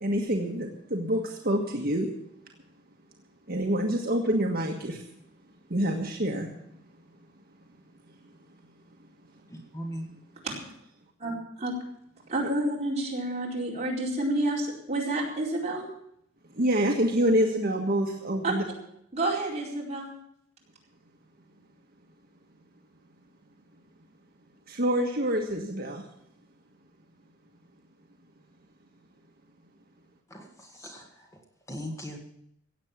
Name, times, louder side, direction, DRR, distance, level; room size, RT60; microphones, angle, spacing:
voice 1, 0.0-2.1 3.5-5.0 5.7-6.5 16.5-18.6 24.7-26.0, equal, 50° right, 1 dB, 1.5 m, -26 dB
voice 2, 9.5-10.1 30.3-31.4 31.7-32.2, equal, 15° left, 2 dB, 2.0 m, -39 dB
voice 3, 12.3-15.9 18.4-18.5 19.1-20.1, right 2 dB, 35° right, -3 dB, 4.6 m, -29 dB
17.0 x 8.3 x 7.3 m, 0.74 s
head